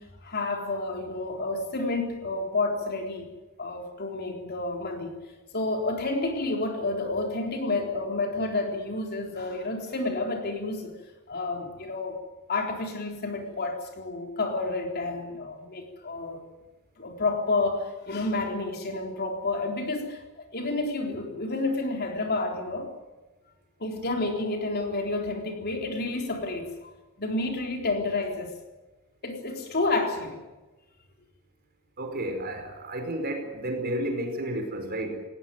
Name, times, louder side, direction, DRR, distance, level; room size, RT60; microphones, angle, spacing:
voice 1, 0.0-5.2 5.5-11.0 11.3-12.2 12.5-16.4 17.0-20.2 20.5-22.9 23.8-26.9 27.2-28.6 29.2-30.4, left 2 dB, 45° left, 3 dB, 3.9 m, -30 dB
voice 2, 32.0-35.2, right 1 dB, 45° right, 5 dB, 4.9 m, -31 dB
19.0 x 18.0 x 9.3 m, 1.1 s
head